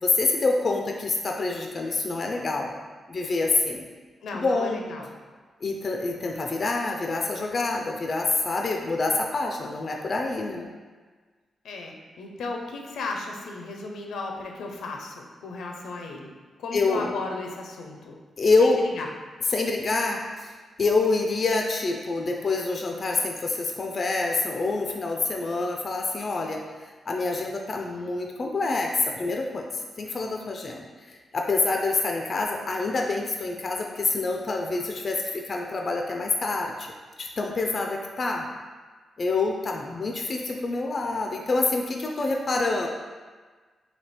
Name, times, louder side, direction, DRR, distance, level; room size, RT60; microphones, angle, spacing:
voice 1, 0.0-2.7 3.1-3.8 4.3-4.8 5.6-10.7 16.7-17.1 18.4-18.8 19.5-20.5 20.8-36.9 37.2-38.5 39.2-42.9, left 3 dB, 40° left, 1 dB, 0.4 m, -26 dB
voice 2, 4.2-5.1 11.6-16.3 16.6-18.2 18.6-19.1, left 3 dB, 85° left, 1 dB, 0.5 m, -35 dB
3.3 x 2.8 x 4.2 m, 1.4 s
cardioid pair, 120°, 0 cm